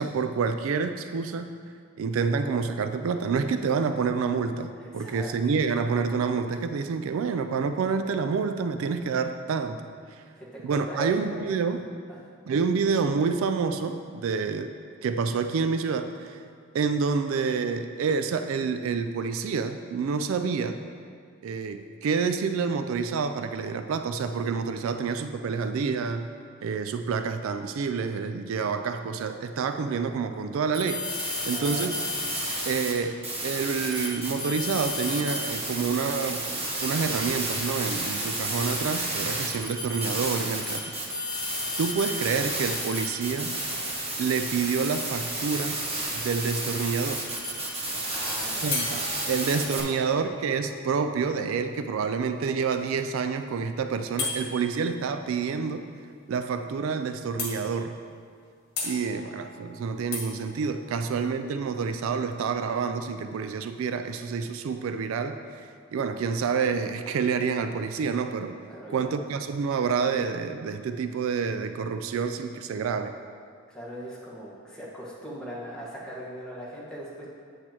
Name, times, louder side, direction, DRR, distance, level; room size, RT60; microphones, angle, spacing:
voice 1, 0.0-1.5 2.0-9.8 10.1-10.2 10.6-11.8 12.5-14.7 15.0-16.4 16.7-20.8 21.4-26.3 26.6-31.1 31.5-31.9 32.7-40.8 41.8-43.5 44.2-45.8 46.1-47.2 48.6-55.9 56.3-57.9 58.8-68.5 68.9-73.1, right 5 dB, 70° right, 8 dB, 0.3 m, -28 dB
voice 2, 4.8-5.3 10.4-11.4 12.2-12.3 31.4-31.9 48.1-49.2 49.5-50.1 60.9-61.1 68.7-69.1 73.7-77.3, right 1 dB, 5° left, -8 dB, 1.4 m, -40 dB
sound 1, 30.7-32.9 33.2-49.8, right 1 dB, 30° right, 1.1 m, -31 dB
sound 2, 48.7-52.4 54.2-54.4 56.4-56.5 56.8-56.9 57.4-58.0 58.8-61.5, left 4 dB, 50° left, 1.7 m, -37 dB
8.0 x 7.4 x 3.0 m, 2.2 s
head